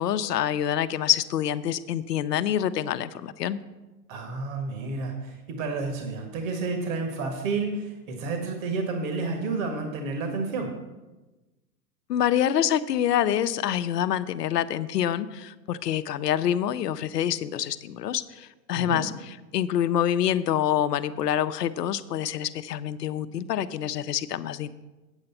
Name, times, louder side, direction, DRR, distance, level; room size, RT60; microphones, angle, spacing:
voice 1, 0.0-3.6 12.1-19.1 19.5-24.7, left 10 dB, 75° left, 13 dB, 0.7 m, -26 dB
voice 2, 4.1-10.7 18.7-19.0, right 3 dB, 55° right, 4 dB, 1.7 m, -30 dB
8.5 x 8.1 x 5.8 m, 1.1 s
hypercardioid pair, 110°, 49 cm